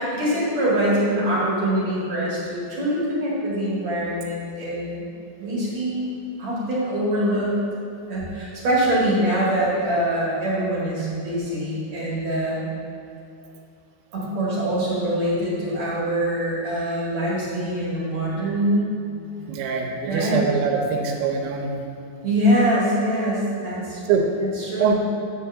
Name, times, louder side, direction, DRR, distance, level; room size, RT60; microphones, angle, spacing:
voice 1, 0.0-5.0 5.4-7.5 8.1-12.7 14.1-18.9 20.0-20.4 22.2-24.0 24.6-24.9, right 1 dB, 45° right, -8 dB, 2.7 m, -24 dB
voice 2, 19.5-21.8 24.1-24.3 24.8-24.9, right 5 dB, 80° right, 2 dB, 3.1 m, -23 dB
10.5 x 4.5 x 7.1 m, 2.5 s
omnidirectional pair, 5.4 m